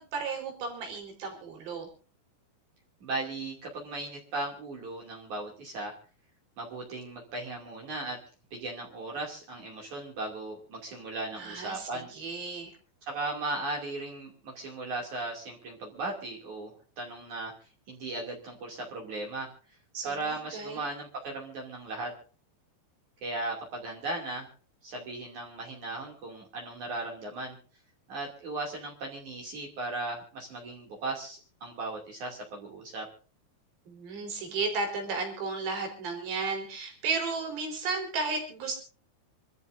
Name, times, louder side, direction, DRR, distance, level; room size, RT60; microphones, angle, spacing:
voice 1, 0.0-1.9 11.4-12.7 19.9-20.8 33.9-38.8, right 4 dB, 75° right, 3 dB, 6.3 m, -34 dB
voice 2, 3.0-5.9 6.6-8.2 8.5-12.1 13.0-17.5 17.9-19.5 20.0-22.1 23.2-24.5 24.8-27.6 28.1-33.1, right 2 dB, 50° right, -1 dB, 3.7 m, -37 dB
27.5 x 13.5 x 2.6 m, 0.39 s
omnidirectional pair, 4.9 m